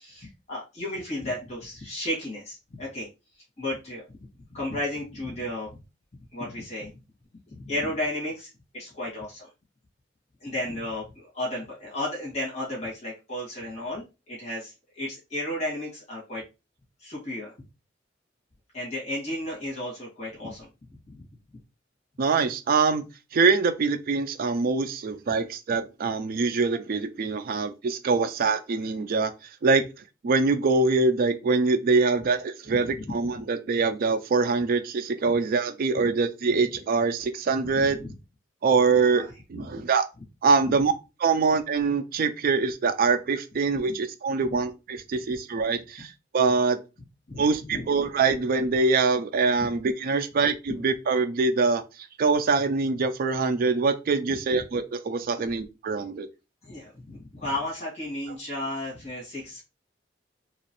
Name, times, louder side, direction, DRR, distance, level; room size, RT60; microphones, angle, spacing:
voice 1, 0.0-3.1 3.6-4.0 4.5-5.7 6.3-6.9 7.5-8.5 8.7-9.5 10.4-16.4 17.0-17.5 18.7-20.7 21.1-21.3 32.7-32.8 37.7-38.1 39.1-39.3 39.5-39.6 43.8-43.9 47.3-47.4 47.7-47.8 49.6-49.7 54.5-54.6 55.4-55.5 56.6-59.6, left 1 dB, 40° left, 1.5 m, -33 dB
voice 2, 22.2-23.0 23.3-29.3 29.6-29.8 30.2-38.0 38.6-40.1 40.4-40.9 41.2-46.8 47.4-51.8 52.2-56.3, right 4 dB, 50° right, 0.4 m, -24 dB
3.0 x 3.0 x 2.9 m
head